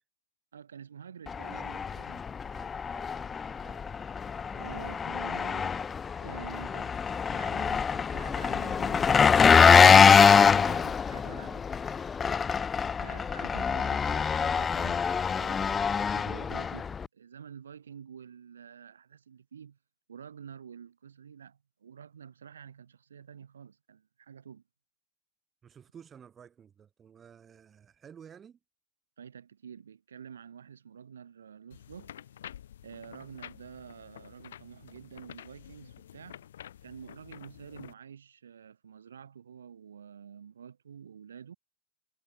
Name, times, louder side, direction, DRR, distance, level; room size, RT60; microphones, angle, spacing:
voice 1, 0.5-2.2 4.5-5.8 6.2-7.0 7.3-11.7 13.0-15.1 15.4-19.8 20.1-24.6 29.2-32.1 32.8-36.4 36.8-41.5, right 7 dB, 70° right, 6.7 m, -48 dB
Engine, 1.3-17.1, left 6 dB, 20° left, 0.5 m, -24 dB
voice 2, 1.5-1.8 2.3-4.0 25.6-28.6, right 8 dB, 20° right, 7.7 m, -53 dB
sound 1, 31.7-37.9, left 10 dB, 60° left, 3.3 m, -49 dB
figure-of-eight pair, 90°, 0 cm